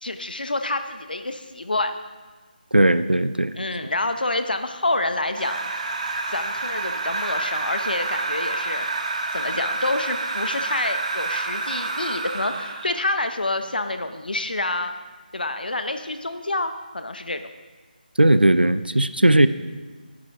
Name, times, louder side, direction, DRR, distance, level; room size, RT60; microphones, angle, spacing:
voice 1, 0.0-1.9 3.6-5.7 6.3-8.9 9.3-14.9 15.3-17.4, left 2 dB, 70° left, 8 dB, 1.0 m, -27 dB
voice 2, 2.7-3.6 18.2-19.5, right 1 dB, 90° right, 13 dB, 0.7 m, -17 dB
sound 1, 5.3-13.0, right 3 dB, 45° right, 1.6 m, -28 dB
19.0 x 11.0 x 3.8 m, 1.4 s
figure-of-eight pair, 155°, 5 cm